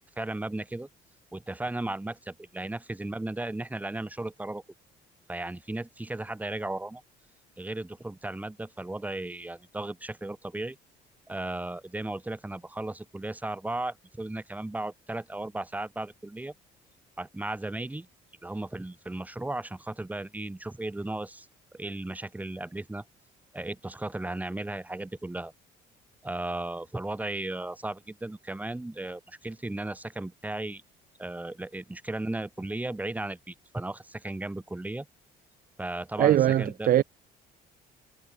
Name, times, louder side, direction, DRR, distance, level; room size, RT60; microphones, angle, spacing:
voice 1, 0.2-0.9 1.3-4.6 5.3-7.0 7.6-10.8 11.3-16.5 17.2-18.1 18.4-21.5 21.7-23.0 23.5-25.5 26.2-30.8 31.2-35.1 35.8-37.0, right 2 dB, 10° right, 2.4 m, -35 dB
voice 2, 36.2-37.0, right 12 dB, 55° right, 1.2 m, -21 dB
cardioid pair, 110°, 17 cm